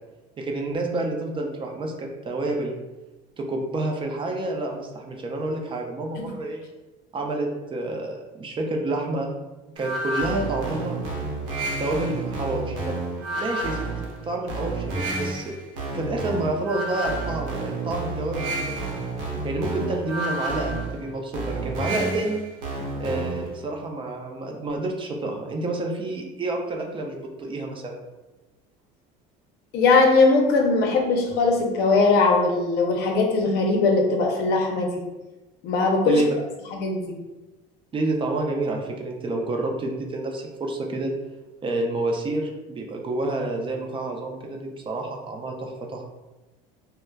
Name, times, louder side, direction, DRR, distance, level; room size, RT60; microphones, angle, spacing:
voice 1, 0.4-2.7 3.4-6.6 7.1-9.3 9.8-11.0 11.8-12.9 13.4-13.8 14.2-15.5 15.9-18.9 19.4-22.4 23.0-28.0 36.0-36.3 37.9-41.1 41.6-46.1, right 2 dB, 30° right, 1 dB, 0.4 m, -29 dB
sound 1, 9.8-23.6, right 2 dB, 80° right, 0.8 m, -30 dB
voice 2, 29.7-35.0 35.6-36.2 36.7-37.2, left 3 dB, 60° left, 1 dB, 0.6 m, -20 dB
3.1 x 2.0 x 2.2 m, 1.1 s
supercardioid pair, 100°, 19 cm